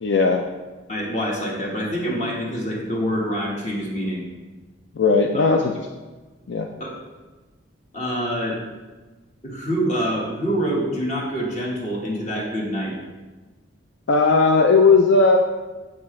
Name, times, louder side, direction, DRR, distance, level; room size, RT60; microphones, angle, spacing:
voice 1, 0.0-0.5 5.0-5.9 6.5-6.7 14.1-15.4, left 4 dB, 60° left, 3 dB, 0.4 m, -17 dB
voice 2, 0.9-4.2 5.3-5.6 6.8-6.9 7.9-8.6 9.4-13.0, equal, 35° left, -3 dB, 1.4 m, -26 dB
7.5 x 6.0 x 3.2 m, 1.2 s
head